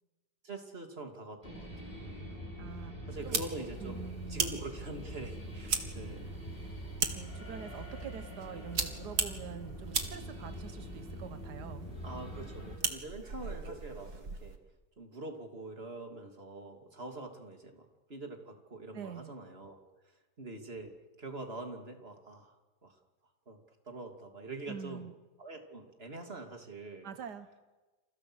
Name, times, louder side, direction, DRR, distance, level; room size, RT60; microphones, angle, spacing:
voice 1, 0.4-2.2 3.1-6.6 12.0-14.6 15.0-19.8 20.4-20.9 21.2-22.6 22.8-23.0 23.5-23.6 23.8-25.1 25.4-27.1, right 2 dB, 35° right, 4 dB, 3.2 m, -44 dB
sound 1, 1.4-12.8, equal, 35° left, 6.7 m, -44 dB
voice 2, 2.6-3.4 3.8-4.4 7.2-11.9 18.9-19.4 24.7-25.1 27.0-27.6, right 7 dB, 85° right, 10 dB, 1.6 m, -45 dB
sound 2, 3.2-14.6, right 5 dB, 70° right, 2.5 m, -39 dB
30.0 x 28.0 x 6.4 m, 1.2 s
omnidirectional pair, 1.7 m